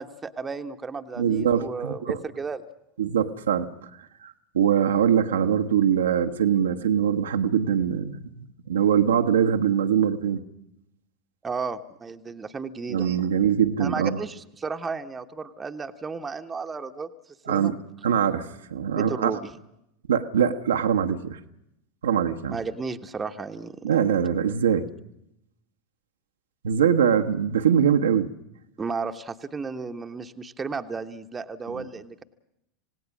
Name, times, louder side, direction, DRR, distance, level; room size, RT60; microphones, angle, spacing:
voice 1, 0.0-2.6 11.4-13.1 13.8-17.1 17.5-17.7 18.9-19.6 22.5-23.9 28.8-32.2, right 4 dB, 20° right, 7 dB, 1.2 m, -33 dB
voice 2, 1.2-2.2 3.0-3.9 4.2-10.4 12.9-14.2 17.5-17.8 18.0-19.4 20.1-21.4 22.0-22.6 23.8-24.8 26.6-28.3, right 8 dB, 70° right, 5 dB, 1.2 m, -23 dB
27.0 x 18.0 x 6.3 m, 0.81 s
figure-of-eight pair, 85°, 0 cm